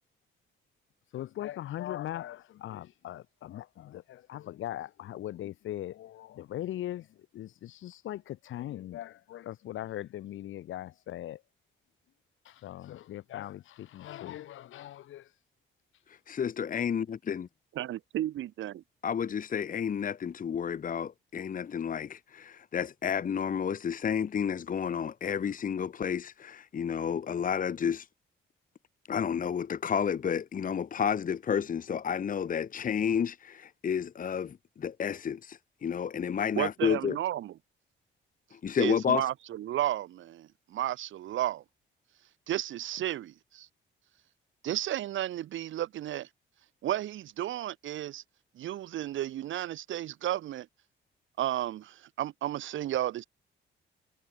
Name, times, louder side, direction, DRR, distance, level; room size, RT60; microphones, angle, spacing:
voice 1, 1.1-11.4 12.5-15.3, left 13 dB, 80° left, 6.8 m, -40 dB
voice 2, 16.1-17.5 19.0-28.1 29.1-37.2 38.5-39.3, left 7 dB, 45° left, 1.1 m, -31 dB
voice 3, 17.7-18.8 36.5-37.5 38.8-41.6 42.5-43.7 44.6-46.3 46.8-48.2 48.6-50.7 51.4-53.2, right 12 dB, 75° right, 2.8 m, -33 dB
cardioid pair, 90°, 20 cm